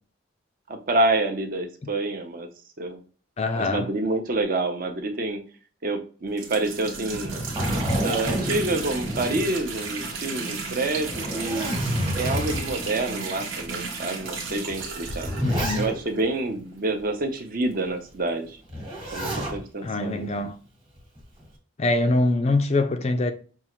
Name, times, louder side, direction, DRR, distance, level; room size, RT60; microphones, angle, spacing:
voice 1, 0.7-2.5 2.8-3.0 3.6-5.4 5.8-7.3 7.9-11.7 12.2-15.3 15.7-18.6 19.1-20.3, right 2 dB, 45° right, 0.6 m, -27 dB
voice 2, 3.4-3.9 15.4-15.9 19.8-20.6 21.8-23.3, left 2 dB, 35° left, 0.4 m, -24 dB
sound 1, 6.3-16.4 17.0-17.1 17.4-17.5 18.5-18.6, right 4 dB, 85° right, 1.1 m, -34 dB
Zipper (clothing), 7.1-10.0 10.4-10.5 11.0-12.9 13.6-13.7 14.7-16.2 18.7-19.6 21.0-21.4, equal, 25° right, 1.2 m, -29 dB
5.4 x 2.4 x 3.0 m
head